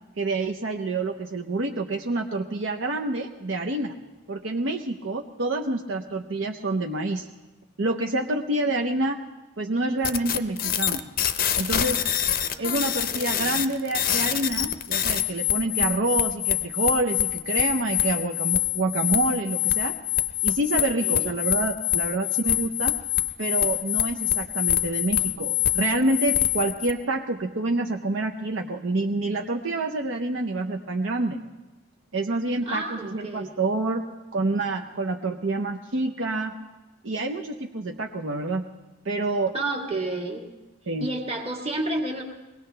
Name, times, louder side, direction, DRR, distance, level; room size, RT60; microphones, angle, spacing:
voice 1, 0.2-4.0 4.3-7.3 7.8-9.2 9.6-11.0 11.5-12.0 12.6-19.9 20.4-22.9 23.4-31.4 32.1-34.0 34.3-36.5 37.0-38.6 39.0-39.5 40.9-41.1, right 2 dB, 60° right, 2 dB, 0.7 m, -27 dB
sound 1, 10.0-26.9, left 12 dB, 40° left, 0.6 m, -25 dB
voice 2, 12.5-13.6 20.8-21.3 32.6-33.5 39.5-40.5 41.0-42.2, right 2 dB, 25° right, 2 dB, 1.6 m, -31 dB
22.5 x 18.0 x 3.3 m, 1.1 s
head